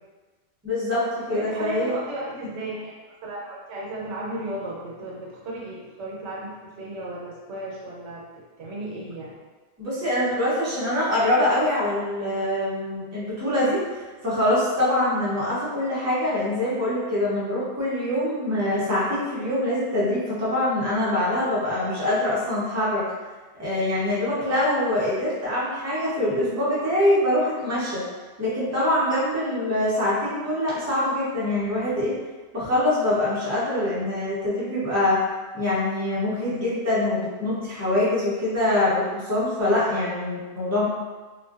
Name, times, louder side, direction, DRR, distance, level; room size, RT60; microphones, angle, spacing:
voice 1, 0.6-1.9 9.8-23.1 23.6-28.0 28.4-32.1 32.5-35.3 35.5-40.8, left 1 dB, 20° right, -9 dB, 0.5 m, -24 dB
voice 2, 1.3-2.9 3.2-9.4, right 1 dB, 85° right, -4 dB, 1.0 m, -35 dB
2.4 x 2.2 x 2.3 m, 1.3 s
omnidirectional pair, 1.2 m